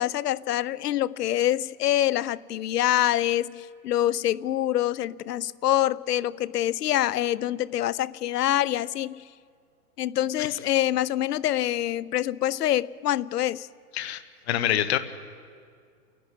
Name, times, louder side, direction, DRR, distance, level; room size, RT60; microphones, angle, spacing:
voice 1, 0.0-9.3 10.0-13.7, left 13 dB, 85° left, 21 dB, 0.7 m, -25 dB
voice 2, 14.5-15.0, left 12 dB, 45° left, 12 dB, 1.1 m, -25 dB
28.5 x 11.0 x 9.9 m, 2.2 s
hypercardioid pair, 160°, 46 cm